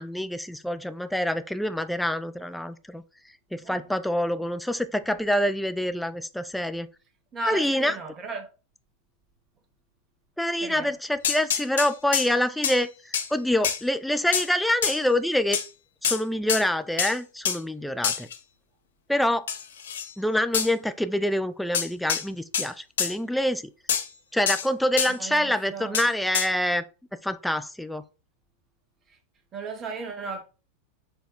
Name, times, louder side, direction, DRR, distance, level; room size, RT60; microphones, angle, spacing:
voice 1, 0.0-3.0 3.5-6.9 7.4-8.0 10.4-15.6 16.0-18.3 19.1-19.5 20.2-23.6 24.3-26.8 27.2-28.0, left 1 dB, ahead, 0.3 m, -26 dB
voice 2, 7.3-8.5 10.6-10.9 25.2-26.0 29.5-30.4, right 3 dB, 25° right, 0.9 m, -35 dB
sound 1, 11.2-12.3 12.6-12.8 13.1-13.3 13.6-13.8 14.3-14.5 14.8-15.0 15.5-15.7 16.0-16.2 16.5-16.6 17.0-17.2 17.5-17.6 18.0-18.4 19.5-20.1 20.5-20.7 21.7-22.3 22.5-22.7 23.0-23.1 23.9-24.1 24.5-24.7 25.0-25.1 25.9-26.1 26.3-26.5, left 8 dB, 65° left, 0.6 m, -26 dB
4.5 x 2.3 x 4.3 m
figure-of-eight pair, 90°, 0 cm